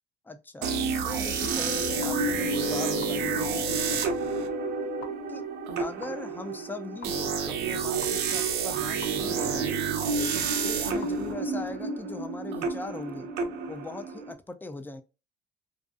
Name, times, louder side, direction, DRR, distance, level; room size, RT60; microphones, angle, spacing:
voice 1, 0.2-0.7 1.0-4.3 5.3-5.4 5.8-9.8 10.3-13.3 13.7-15.0, left 2 dB, 10° left, 0.4 m, -40 dB
sound 1, 0.6-14.3, right 5 dB, 90° right, 0.6 m, -30 dB
sound 2, 1.6-5.0 6.0-6.1 7.0-7.1 8.0-8.1 9.0-9.1 10.0-10.1 11.0-11.1, left 5 dB, 70° left, 0.5 m, -36 dB
2.5 x 2.5 x 2.4 m
cardioid pair, 110°, 17 cm